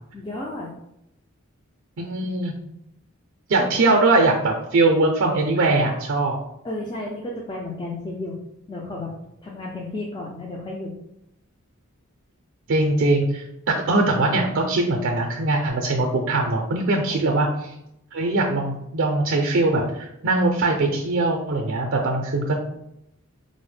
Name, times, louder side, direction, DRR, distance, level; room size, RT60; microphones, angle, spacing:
voice 1, 0.1-0.7 3.6-3.7 6.6-8.4 8.7-9.1 9.4-10.9 17.1-17.2, left 2 dB, 20° left, -3 dB, 0.4 m, -32 dB
voice 2, 2.0-2.5 3.5-6.4 12.7-17.7 18.1-22.6, right 2 dB, 60° right, 1 dB, 0.4 m, -21 dB
3.9 x 2.1 x 3.2 m, 0.81 s
head